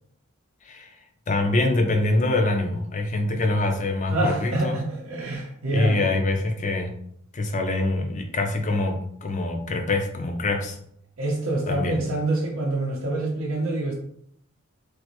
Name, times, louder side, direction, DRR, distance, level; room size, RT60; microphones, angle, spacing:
voice 1, 1.3-4.8 5.7-6.9 7.3-10.8 11.7-12.0, left 2 dB, 35° left, 4 dB, 0.5 m, -24 dB
voice 2, 4.1-6.0 11.2-13.9, right 2 dB, 75° right, -2 dB, 0.6 m, -26 dB
3.2 x 2.5 x 2.9 m, 0.69 s
head